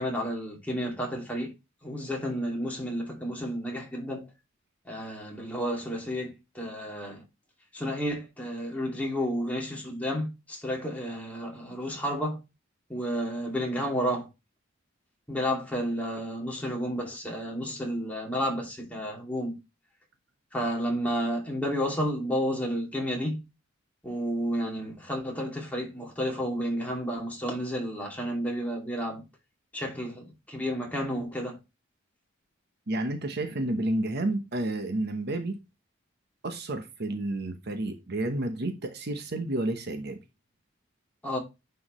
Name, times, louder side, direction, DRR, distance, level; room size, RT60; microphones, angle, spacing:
voice 1, 0.0-1.5 1.8-4.3 4.9-7.2 7.7-12.4 12.9-14.3 15.3-19.6 20.5-23.4 24.0-29.2 29.7-31.6 41.2-41.4, equal, 10° left, 2.4 m, -31 dB
voice 2, 32.9-35.6 36.4-40.2, right 1 dB, 55° right, 0.9 m, -30 dB
9.7 x 4.7 x 3.1 m
head